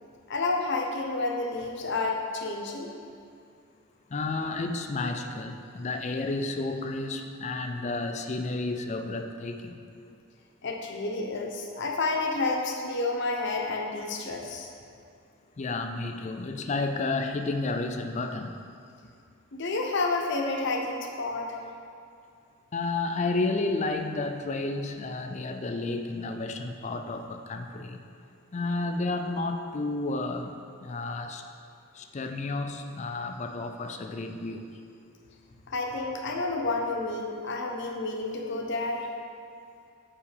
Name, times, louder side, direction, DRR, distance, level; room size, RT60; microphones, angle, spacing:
voice 1, 0.3-2.9 10.6-14.7 19.5-21.6 35.7-39.1, left 3 dB, 55° left, 1 dB, 0.8 m, -30 dB
voice 2, 4.1-9.8 15.6-18.5 22.7-28.0 28.5-30.5 30.8-31.4 31.9-34.7, left 3 dB, 30° left, 6 dB, 0.4 m, -31 dB
5.9 x 4.7 x 6.6 m, 2.4 s
head